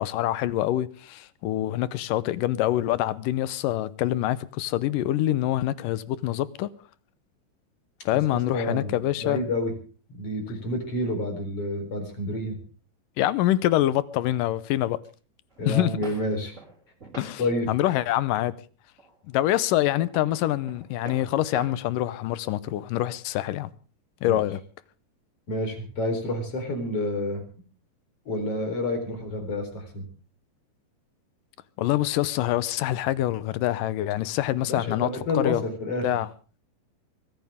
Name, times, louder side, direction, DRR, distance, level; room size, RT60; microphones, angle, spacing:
voice 1, 0.0-6.7 8.1-9.4 13.2-15.0 15.7-15.9 17.2-17.4 17.7-18.5 19.3-23.7 24.2-24.6 31.8-35.1 35.3-35.6 36.0-36.3, left 14 dB, 80° left, 2.5 m, -25 dB
voice 2, 8.5-9.7 10.2-12.6 15.6-16.5 17.4-17.7 24.2-24.4 25.5-27.4 28.3-30.0 34.7-36.1, left 1 dB, 45° left, 4.9 m, -29 dB
sound 1, 15.5-17.8 18.3-18.5 19.0-19.5 19.7-21.7, right 4 dB, 20° right, 3.8 m, -45 dB
23.0 x 15.0 x 3.6 m
omnidirectional pair, 3.9 m